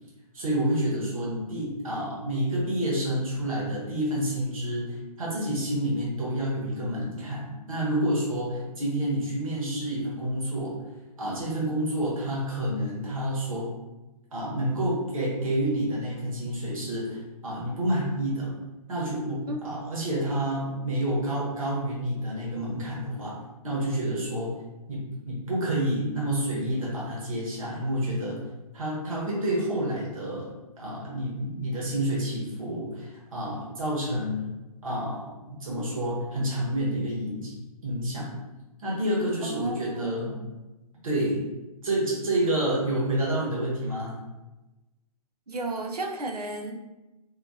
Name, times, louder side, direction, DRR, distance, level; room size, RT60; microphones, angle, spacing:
voice 1, 0.3-10.7 11.2-13.7 14.3-18.5 18.9-23.4 23.6-24.5 24.9-28.4 28.7-30.5 30.8-34.4 34.8-37.5 37.8-38.3 38.8-40.3 41.0-41.4 41.8-44.1, right 1 dB, 60° right, -5 dB, 1.1 m, -29 dB
voice 2, 39.4-40.5 45.5-46.8, right 2 dB, 80° right, 3 dB, 0.5 m, -33 dB
2.5 x 2.3 x 2.7 m, 1.0 s
figure-of-eight pair, 125°, 20 cm